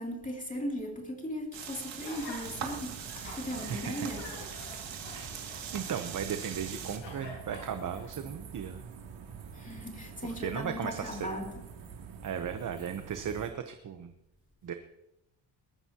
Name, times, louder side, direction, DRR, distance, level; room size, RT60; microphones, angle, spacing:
voice 1, 0.0-4.2 9.5-11.6, equal, 15° left, 1 dB, 2.6 m, -38 dB
sound 1, 1.5-7.0, right 7 dB, 65° right, 2.4 m, -42 dB
Gasp, 2.1-2.4 3.0-3.7 4.0-6.5 7.0-8.1 8.7-8.8, left 2 dB, 80° left, 7.1 m, -47 dB
sound 2, 2.4-13.5, right 6 dB, 80° right, 2.8 m, -46 dB
voice 2, 3.6-4.2 5.1-8.9 10.4-11.3 12.2-14.1 14.6-14.7, right 8 dB, 40° right, 7 dB, 0.9 m, -36 dB
20.5 x 14.0 x 2.9 m, 0.82 s
cardioid pair, 150°, 46 cm